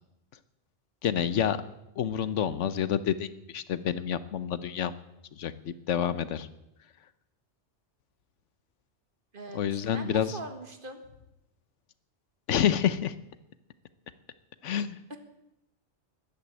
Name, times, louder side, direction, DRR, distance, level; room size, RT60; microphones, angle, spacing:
voice 1, 1.0-1.6 2.0-4.9 5.3-6.5 9.5-10.4 12.5-13.1 14.6-15.0, left 9 dB, 85° left, 14 dB, 1.2 m, -28 dB
voice 2, 9.9-11.0 15.1-15.2, right 2 dB, 50° right, 6 dB, 1.8 m, -41 dB
13.5 x 11.5 x 8.9 m, 0.89 s
omnidirectional pair, 1.2 m